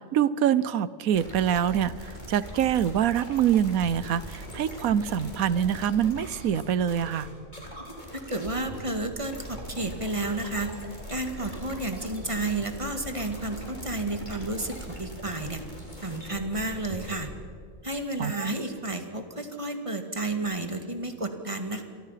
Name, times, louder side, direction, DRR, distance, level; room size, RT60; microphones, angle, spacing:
voice 1, 0.0-7.3 18.2-18.5, right 9 dB, 90° right, 17 dB, 1.2 m, -25 dB
sound 1, 1.1-17.4, equal, 35° left, 4.5 m, -41 dB
voice 2, 8.1-10.8 11.1-15.6 16.0-17.3 17.8-21.8, right 2 dB, 25° right, 5 dB, 2.1 m, -31 dB
29.0 x 24.0 x 5.8 m, 2.2 s
omnidirectional pair, 1.4 m